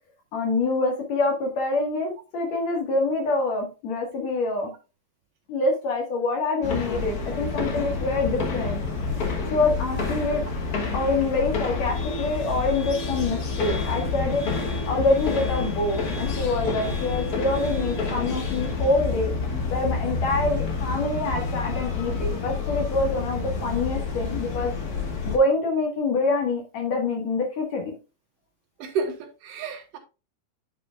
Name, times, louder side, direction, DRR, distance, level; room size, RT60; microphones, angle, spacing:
voice 1, 0.3-4.7 5.5-8.8 9.5-10.4 10.9-14.4 14.9-19.3 19.7-24.7 25.2-27.9, left 2 dB, 60° left, 2.7 m, -26 dB
sound 1, 6.6-25.4, left 4 dB, 90° left, 0.8 m, -28 dB
voice 2, 28.8-30.0, right 4 dB, 80° right, 2.9 m, -30 dB
11.0 x 5.0 x 2.4 m
omnidirectional pair, 3.8 m